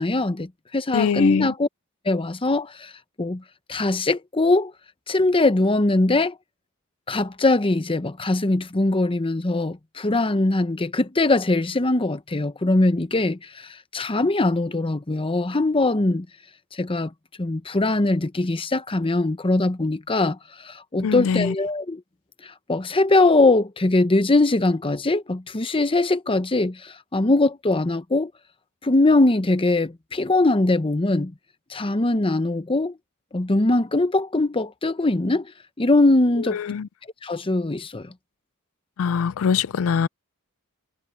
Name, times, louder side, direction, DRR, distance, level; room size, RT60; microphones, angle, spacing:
voice 1, 0.0-1.7 2.0-2.9 3.2-3.4 3.7-4.7 5.1-6.3 7.1-16.3 16.7-17.1 17.4-22.0 22.4-28.3 28.8-31.3 31.7-33.0 33.3-35.5 35.8-36.6 37.2-38.1, left 2 dB, 25° left, 0.8 m, -21 dB
voice 2, 0.9-1.5 21.0-21.5 36.5-36.9 39.0-40.1, left 6 dB, 65° left, 0.4 m, -23 dB
head